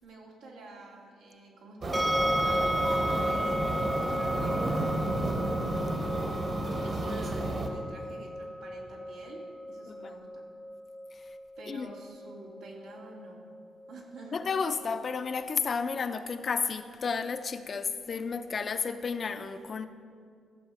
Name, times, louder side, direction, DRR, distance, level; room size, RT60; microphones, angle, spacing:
voice 1, 0.0-5.9 6.6-10.4 11.6-13.4 13.9-14.4, right 2 dB, 90° right, -3 dB, 2.3 m, -48 dB
sound 1, 1.8-7.7, right 2 dB, 40° right, 1.3 m, -31 dB
sound 2, 1.9-14.9, equal, 10° right, 0.6 m, -34 dB
voice 2, 14.3-19.9, left 5 dB, 45° left, 10 dB, 0.5 m, -32 dB
14.5 x 6.4 x 4.8 m, 2.2 s
cardioid pair, 90°, 0 cm